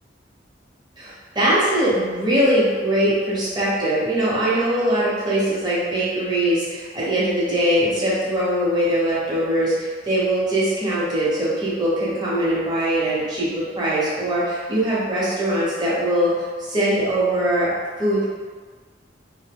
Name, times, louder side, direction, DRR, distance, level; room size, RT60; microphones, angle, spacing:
voice 1, 1.0-16.3 16.7-17.7 18.0-18.2, right 1 dB, 25° right, -9 dB, 0.9 m, -21 dB
2.6 x 2.1 x 3.4 m, 1.5 s
head